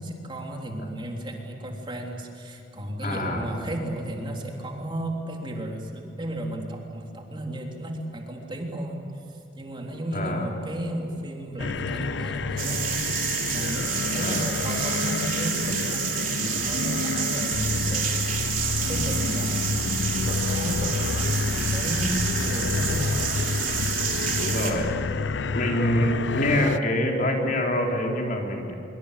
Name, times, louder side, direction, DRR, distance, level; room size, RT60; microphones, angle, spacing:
voice 1, 0.0-9.0 9.3-13.1 13.5-23.4 24.0-24.2, right 1 dB, 30° right, 0 dB, 3.5 m, -34 dB
voice 2, 3.0-3.4 10.1-10.5 14.2-14.5 24.4-24.9 25.5-28.7, left 1 dB, 50° left, 0 dB, 4.0 m, -25 dB
sound 1, 11.6-26.8, left 4 dB, 75° left, 0.6 m, -29 dB
sound 2, 12.6-24.7, right 8 dB, 50° right, 3.6 m, -29 dB
25.5 x 24.5 x 8.4 m, 2.6 s
head